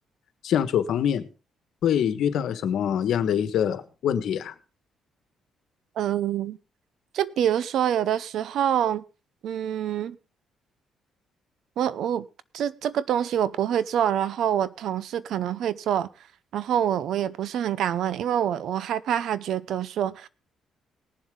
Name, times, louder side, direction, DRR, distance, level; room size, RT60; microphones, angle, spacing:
voice 1, 0.4-1.2 1.8-4.5, left 9 dB, 75° left, 1.3 m, -24 dB
voice 2, 6.0-6.6 7.1-9.0 9.4-10.2 11.8-12.3 12.5-16.1 16.5-20.3, right 10 dB, 75° right, 0.7 m, -26 dB
19.5 x 7.4 x 3.7 m
cardioid pair, 90°, 0 cm